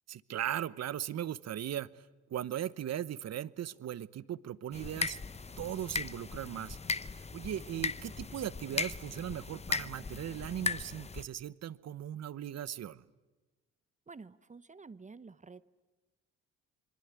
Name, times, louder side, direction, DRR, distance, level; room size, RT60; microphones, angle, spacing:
voice 1, 0.1-2.0 2.3-5.2 5.6-6.8 7.1-13.0, right 11 dB, 60° right, 18 dB, 1.0 m, -38 dB
sound 1, 4.7-11.2, left 4 dB, 20° left, 0.9 m, -38 dB
voice 2, 14.1-15.7, right 4 dB, 25° right, 15 dB, 0.9 m, -50 dB
27.0 x 22.5 x 9.6 m, 1.2 s
cardioid pair, 90°, 30 cm